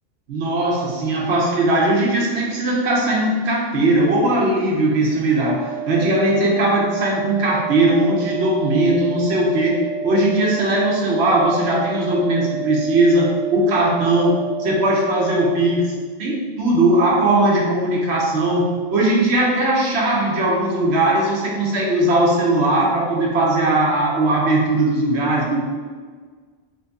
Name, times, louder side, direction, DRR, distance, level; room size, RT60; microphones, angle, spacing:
voice 1, 0.3-15.9 16.2-25.6, right 1 dB, 85° right, -3 dB, 1.0 m, -19 dB
sound 1, 5.5-15.5, right 7 dB, 80° left, 1.0 m, -30 dB
3.1 x 2.7 x 3.4 m, 1.5 s
omnidirectional pair, 1.1 m